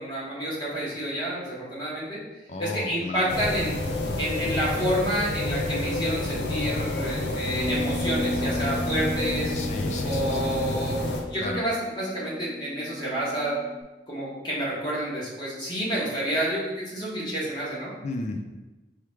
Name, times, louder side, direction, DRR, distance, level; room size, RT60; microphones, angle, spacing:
voice 1, 0.0-2.2 2.6-3.7 4.2-9.5 10.0-13.6 14.1-17.9, right 1 dB, 25° left, -7 dB, 1.3 m, -29 dB
voice 2, 2.5-3.4 9.5-10.5 11.4-11.6 18.0-18.5, left 2 dB, 40° left, 5 dB, 0.4 m, -34 dB
sound 1, 3.3-11.2, left 2 dB, 85° left, 0.6 m, -29 dB
Bass guitar, 7.6-13.8, equal, 55° left, 1.0 m, -35 dB
4.7 x 3.1 x 3.4 m, 1.1 s
head